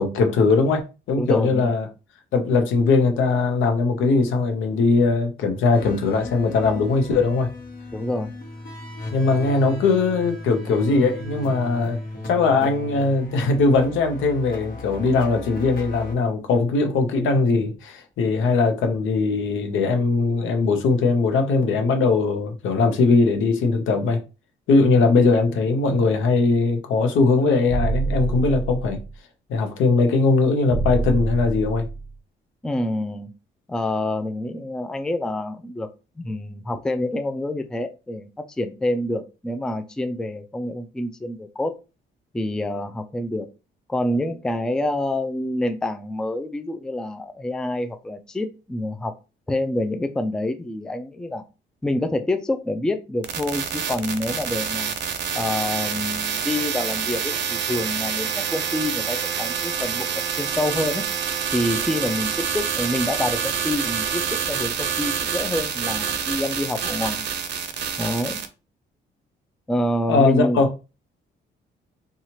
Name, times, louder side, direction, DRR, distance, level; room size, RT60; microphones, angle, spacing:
voice 1, 0.0-1.9 2.3-7.5 9.1-12.0 12.2-24.2 24.7-29.0 29.5-31.9 70.1-70.7, left 3 dB, 80° left, 0.7 m, -20 dB
voice 2, 1.2-1.7 7.9-8.3 32.6-33.3 33.7-35.9 36.2-38.3 38.6-41.8 42.3-43.5 43.9-49.1 49.5-51.4 51.8-54.9 55.3-60.1 60.3-61.0 61.5-67.2 68.0-68.4 69.7-70.6, left 1 dB, 5° left, 0.3 m, -27 dB
sound 1, 5.7-16.1, left 2 dB, 45° left, 1.2 m, -36 dB
sound 2, 27.7-29.1 30.7-32.1, right 3 dB, 15° right, 0.8 m, -26 dB
sound 3, 53.2-68.5, right 7 dB, 60° right, 0.5 m, -27 dB
2.8 x 2.3 x 2.9 m
cardioid pair, 90°, 20 cm